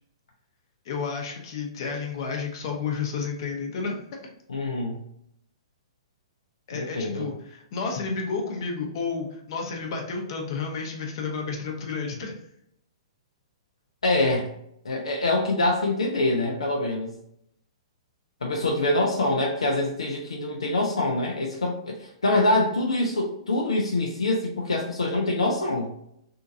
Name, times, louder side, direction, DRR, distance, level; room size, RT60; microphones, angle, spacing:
voice 1, 0.8-4.0 6.7-12.3, left 5 dB, 50° left, 1 dB, 0.8 m, -31 dB
voice 2, 4.5-5.0 6.7-7.3 14.0-14.5 14.8-17.1 18.4-25.9, left 2 dB, 80° left, 0 dB, 0.5 m, -25 dB
3.7 x 2.4 x 2.6 m, 0.76 s
figure-of-eight pair, 115°, 3 cm